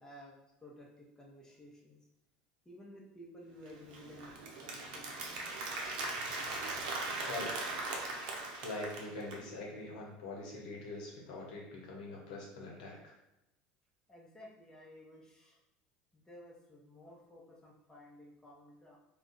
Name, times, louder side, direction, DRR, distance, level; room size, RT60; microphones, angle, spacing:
voice 1, 0.0-2.0 2.7-5.2 14.1-15.6 16.1-19.0, equal, 15° left, -3 dB, 0.8 m, -54 dB
Applause, 3.6-9.4, right 2 dB, 75° right, 0.6 m, -39 dB
voice 2, 7.3-7.7 8.0-13.2, left 2 dB, 80° left, -2 dB, 0.8 m, -44 dB
2.5 x 2.2 x 3.8 m, 0.89 s
supercardioid pair, 95°, 4 cm